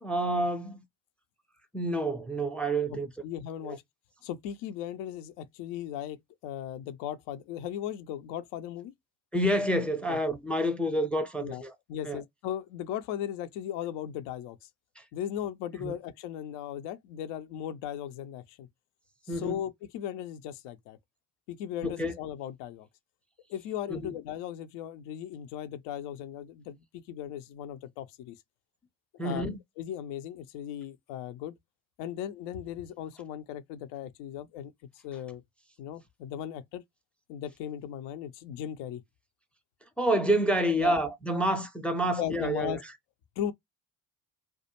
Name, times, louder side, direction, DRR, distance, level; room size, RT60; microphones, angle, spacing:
voice 1, 0.0-0.8 1.7-3.1 3.6-3.8 9.3-11.7 12.0-12.2 15.0-15.1 15.8-15.9 19.3-19.6 21.8-22.1 23.9-24.1 29.2-29.6 40.0-42.8, right 1 dB, 5° left, 0.5 m, -28 dB
voice 2, 3.2-3.8 4.2-8.9 10.1-10.2 11.4-11.6 11.9-14.7 15.1-18.7 19.4-21.0 21.5-22.9 23.5-28.4 29.1-29.5 29.8-31.5 32.0-34.7 35.0-35.4 35.8-36.8 37.3-39.0 40.7-41.0 42.2-42.8 43.4-43.5, left 10 dB, 60° left, 0.6 m, -37 dB
2.3 x 2.1 x 2.8 m
hypercardioid pair, 50°, 46 cm